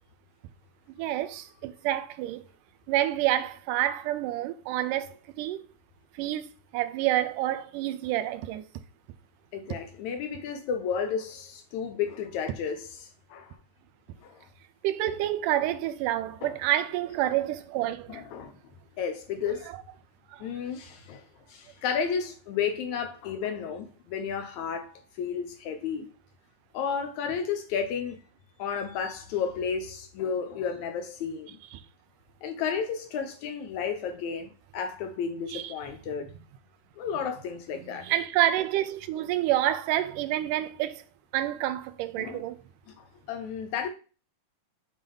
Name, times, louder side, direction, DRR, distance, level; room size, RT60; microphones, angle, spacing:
voice 1, 1.0-2.4 2.9-5.6 6.2-6.5 6.7-8.6 14.8-18.2 20.3-20.5 35.5-35.7 38.0-41.0 41.3-42.6, right 13 dB, 90° right, 2.2 m, -28 dB
voice 2, 9.5-13.6 14.2-14.5 16.4-16.6 18.1-18.6 19.0-19.7 20.4-26.2 26.7-28.2 28.6-31.6 32.4-36.3 37.0-38.1 42.2-42.4 42.9-43.9, left 6 dB, 75° left, 1.9 m, -32 dB
7.3 x 3.4 x 5.3 m
omnidirectional pair, 3.6 m